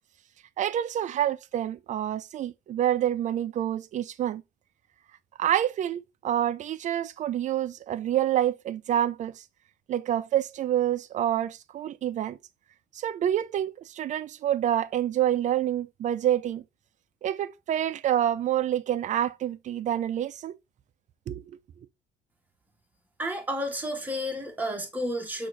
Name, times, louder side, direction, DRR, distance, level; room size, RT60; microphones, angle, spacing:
voice 1, 0.6-4.4 5.4-9.4 9.9-12.4 12.9-16.6 17.2-20.6 21.3-21.4, right 11 dB, 45° right, 0.4 m, -27 dB
voice 2, 23.2-25.5, equal, 10° right, 1.3 m, -31 dB
6.1 x 2.6 x 3.2 m
cardioid pair, 110°, 17 cm